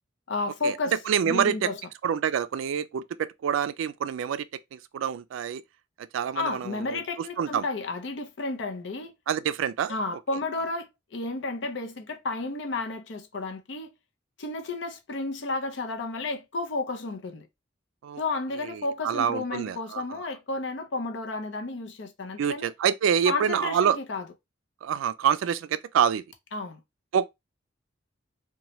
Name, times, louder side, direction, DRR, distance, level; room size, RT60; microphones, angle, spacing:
voice 1, 0.3-1.0 1.2-1.8 6.3-9.1 9.9-13.9 14.4-17.5 18.2-22.7 23.3-24.3 26.5-26.8, left 3 dB, 65° left, 0.6 m, -32 dB
voice 2, 1.1-1.7 2.0-4.5 4.7-5.6 6.1-7.0 7.4-7.6 9.3-9.9 18.0-18.2 18.7-20.0 22.4-24.0 24.8-26.2 27.1-27.3, right 8 dB, 85° right, 0.3 m, -26 dB
2.8 x 2.2 x 3.0 m
head